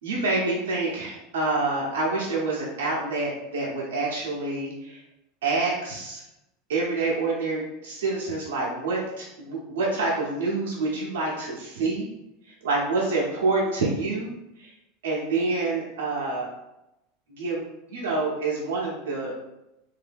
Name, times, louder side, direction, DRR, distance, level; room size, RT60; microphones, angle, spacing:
voice 1, 0.0-5.0 5.4-6.2 6.7-12.1 12.6-14.3 14.6-14.7 15.0-16.5 17.3-17.6 17.9-19.4, right 3 dB, 85° right, -5 dB, 1.0 m, -27 dB
2.7 x 2.7 x 3.6 m, 0.91 s
supercardioid pair, 120°, 0 cm